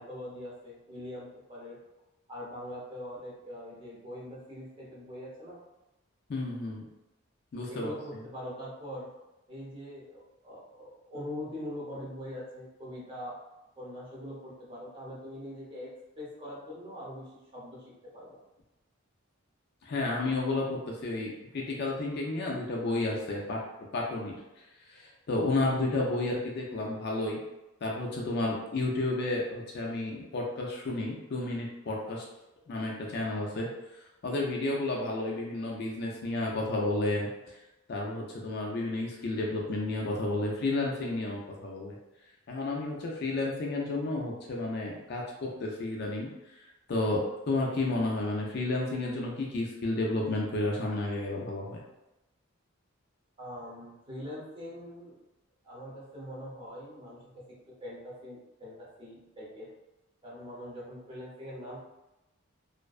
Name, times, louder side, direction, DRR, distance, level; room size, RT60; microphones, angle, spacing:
voice 1, 0.0-1.8 2.3-5.6 7.7-9.1 9.5-13.4 13.8-17.8 18.1-18.4 53.4-55.2 55.6-57.3 57.7-59.7 60.2-61.8, left 1 dB, 25° right, -7 dB, 0.7 m, -42 dB
voice 2, 6.3-6.9 7.5-7.9 19.8-23.6 23.9-24.3 24.9-27.4 27.8-32.2 32.7-33.7 34.2-37.3 37.9-42.0 42.5-46.3 46.9-51.8, left 2 dB, 45° left, -2 dB, 0.4 m, -31 dB
2.5 x 2.1 x 2.3 m, 0.97 s
head